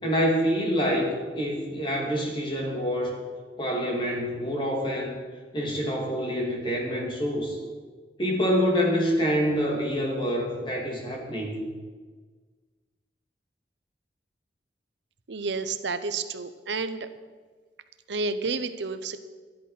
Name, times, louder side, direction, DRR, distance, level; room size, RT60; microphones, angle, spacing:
voice 1, 0.0-3.2 3.6-5.2 5.5-7.6 8.2-11.6, equal, 30° left, -1 dB, 2.7 m, -26 dB
voice 2, 15.3-17.0 18.1-19.2, right 4 dB, 85° right, 11 dB, 0.8 m, -30 dB
13.0 x 11.0 x 5.8 m, 1.5 s
head